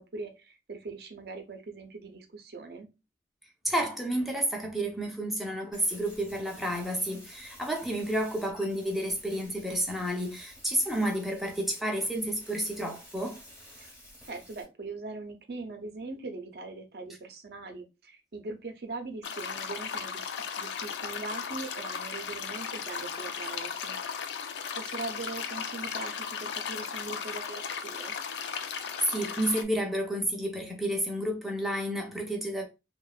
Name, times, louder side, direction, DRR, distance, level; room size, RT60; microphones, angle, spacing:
voice 1, 0.0-2.9 13.8-13.9 14.3-24.4 24.7-28.1, right 3 dB, 60° right, 0.5 m, -41 dB
voice 2, 3.6-13.4 28.6-32.7, right 1 dB, ahead, 0.4 m, -31 dB
sound 1, 5.7-14.6, equal, 15° left, 0.9 m, -52 dB
sound 2, 19.2-29.6, left 6 dB, 75° left, 0.3 m, -36 dB
2.9 x 2.1 x 2.3 m
head